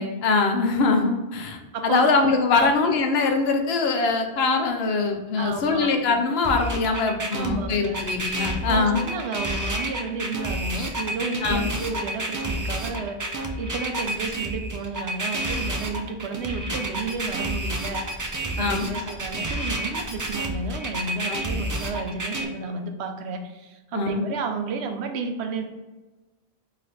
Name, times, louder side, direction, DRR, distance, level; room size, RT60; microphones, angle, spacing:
voice 1, 0.0-9.0 10.8-10.9 11.4-11.7 18.6-18.9 21.3-21.4 23.9-24.2, left 4 dB, 70° left, 4 dB, 0.9 m, -23 dB
voice 2, 1.7-2.1 2.5-2.7 5.4-5.9 7.3-8.0 8.7-18.2 18.6-25.7, right 4 dB, 85° right, 6 dB, 0.9 m, -32 dB
sound 1, 6.4-22.4, right 1 dB, 30° right, 0.4 m, -29 dB
4.0 x 3.2 x 3.9 m, 1.2 s
omnidirectional pair, 1.1 m